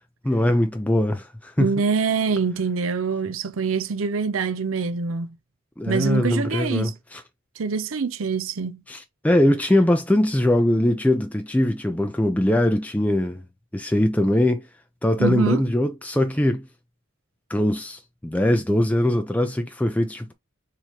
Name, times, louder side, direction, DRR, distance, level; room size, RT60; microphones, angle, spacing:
voice 1, 0.2-1.7 5.8-7.2 8.9-13.4 13.7-14.6 15.0-16.6 17.5-20.3, left 1 dB, 5° left, 0.5 m, -21 dB
voice 2, 1.6-5.3 5.9-6.9 7.6-8.8 15.2-15.6, right 5 dB, 75° right, 0.6 m, -25 dB
4.5 x 3.6 x 3.0 m
head